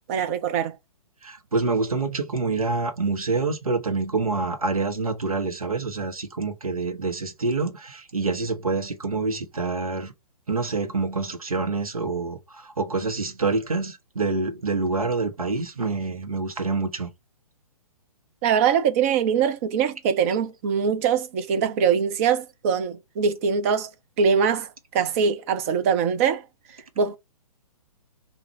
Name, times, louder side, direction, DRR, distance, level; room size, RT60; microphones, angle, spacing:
voice 1, 0.1-0.8 18.4-23.9 24.2-27.2, right 7 dB, 25° right, 0.5 m, -23 dB
voice 2, 1.2-10.1 10.5-17.1, right 3 dB, 70° right, 1.1 m, -26 dB
3.7 x 2.5 x 4.4 m
figure-of-eight pair, 125°, 19 cm